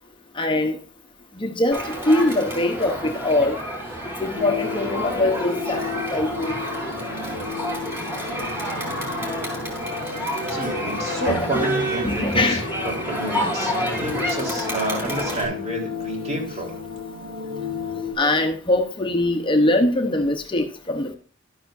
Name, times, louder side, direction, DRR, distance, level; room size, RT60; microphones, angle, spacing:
voice 1, 0.3-0.8 1.4-3.6 4.2-5.8 6.1-6.5 11.3-11.7 12.0-12.7 18.2-21.1, left 1 dB, 25° left, 0.9 m, -22 dB
Crowd, 1.7-15.4, equal, 10° right, 4.3 m, -29 dB
sound 1, 4.3-18.1, left 5 dB, 85° right, 3.8 m, -33 dB
voice 2, 10.5-16.8, right 1 dB, 35° right, 3.8 m, -30 dB
12.5 x 9.9 x 2.6 m
head